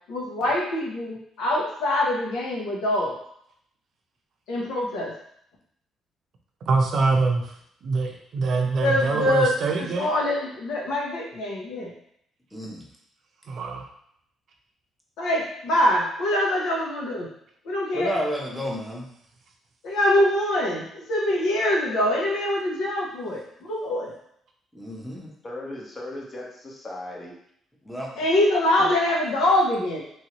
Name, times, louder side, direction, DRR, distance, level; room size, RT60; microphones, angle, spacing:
voice 1, 0.1-3.1 4.5-5.1 8.5-9.5 9.8-11.9 15.2-17.3 17.6-18.2 19.8-24.1 28.2-30.0, left 1 dB, 85° left, -2 dB, 0.9 m, -24 dB
voice 2, 6.7-7.5 7.8-10.1 13.5-13.9, right 4 dB, 60° right, 2 dB, 0.6 m, -24 dB
voice 3, 12.5-12.8 17.9-19.1 24.7-25.2 27.8-28.1, equal, ahead, -3 dB, 0.8 m, -30 dB
voice 4, 25.1-27.3 28.8-28.9, left 1 dB, 35° left, -2 dB, 0.9 m, -38 dB
3.2 x 2.7 x 3.0 m, 0.69 s
cardioid pair, 100°, 0 cm